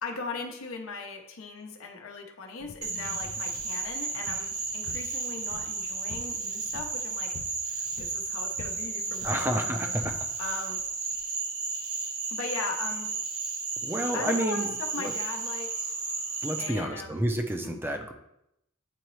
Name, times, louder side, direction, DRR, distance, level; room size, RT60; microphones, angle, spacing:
voice 1, 0.0-7.4 7.7-9.9 10.4-10.8 12.3-13.1 14.1-15.9 16.6-17.3 17.6-17.8, left 3 dB, 75° left, 2 dB, 0.8 m, -38 dB
sound 1, 2.6-11.3, left 3 dB, 50° left, 0.5 m, -48 dB
Frog, 2.8-16.7, right 4 dB, 85° right, 0.8 m, -33 dB
voice 2, 9.2-10.3 13.8-14.7 15.0-15.1 16.4-18.1, right 1 dB, 10° right, 5 dB, 0.6 m, -30 dB
9.3 x 3.9 x 3.2 m, 0.80 s
head